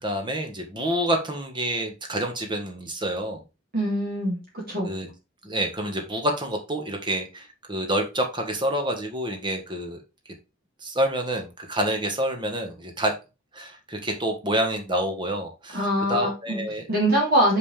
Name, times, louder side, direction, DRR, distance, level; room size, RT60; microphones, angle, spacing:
voice 1, 0.0-3.4 4.9-5.1 5.4-10.0 10.8-13.1 13.5-16.9, right 1 dB, 25° right, 3 dB, 1.5 m, -28 dB
voice 2, 3.7-4.4 4.7-4.9 15.7-16.6 16.9-17.6, right 1 dB, 50° right, -4 dB, 3.9 m, -23 dB
6.6 x 5.6 x 3.4 m, 0.28 s
head